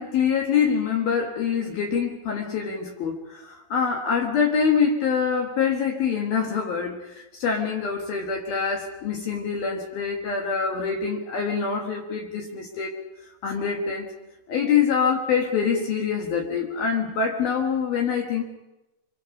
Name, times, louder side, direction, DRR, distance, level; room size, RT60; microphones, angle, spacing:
voice 1, 0.0-12.9 13.4-14.1 14.5-18.4, left 6 dB, 60° left, 1 dB, 3.1 m, -25 dB
25.5 x 23.0 x 5.5 m, 0.99 s
omnidirectional pair, 5.6 m